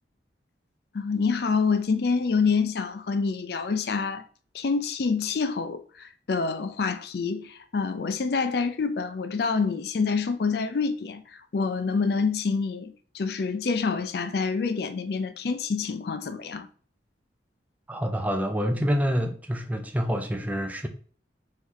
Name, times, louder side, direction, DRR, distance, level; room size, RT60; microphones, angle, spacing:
voice 1, 0.9-4.2 4.5-11.2 11.5-16.7, left 5 dB, 55° left, 0.4 m, -27 dB
voice 2, 17.9-20.9, equal, 10° right, 0.4 m, -27 dB
3.8 x 3.1 x 4.0 m
head